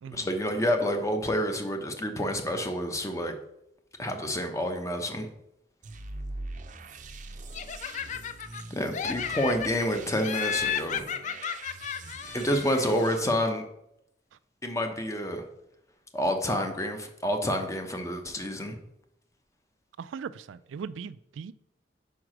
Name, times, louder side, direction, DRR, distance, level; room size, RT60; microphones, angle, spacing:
voice 1, 0.1-3.4 4.0-5.3 8.7-11.1 12.3-13.7 14.6-15.4 16.1-18.8, equal, 15° left, 0.8 m, -28 dB
sound 1, 5.8-13.2, right 3 dB, 45° right, 0.6 m, -43 dB
Laughter, 7.5-8.6 8.9-9.9 10.2-13.0, left 8 dB, 40° left, 0.3 m, -33 dB
voice 2, 20.0-21.5, right 6 dB, 85° right, 0.3 m, -39 dB
4.9 x 4.6 x 6.1 m
head